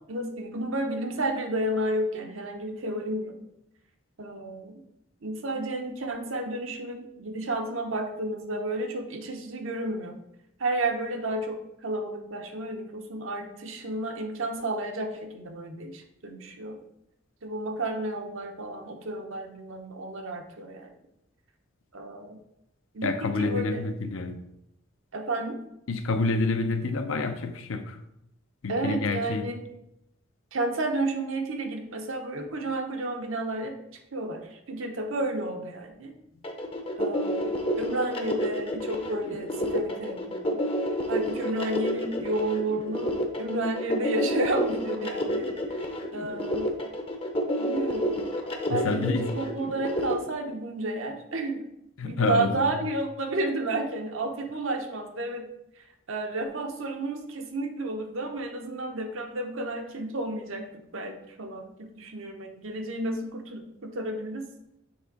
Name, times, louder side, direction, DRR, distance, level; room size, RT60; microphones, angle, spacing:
voice 1, 0.1-3.4 4.2-4.8 5.2-10.2 10.6-16.8 17.4-20.9 21.9-22.4 22.9-23.8 25.1-25.6 28.7-29.6 30.5-36.1 37.0-40.6 41.1-45.5 46.1-46.7 47.6-48.3 48.7-51.6 52.0-55.5 55.8-64.5, right 2 dB, 70° right, 4 dB, 0.8 m, -31 dB
voice 2, 23.0-24.4 25.9-28.0 28.6-29.5 48.7-49.3 52.0-52.7, left 3 dB, 70° left, 8 dB, 0.6 m, -28 dB
sound 1, 36.4-50.1, equal, 25° left, 0.6 m, -29 dB
7.0 x 3.4 x 4.0 m, 0.83 s
head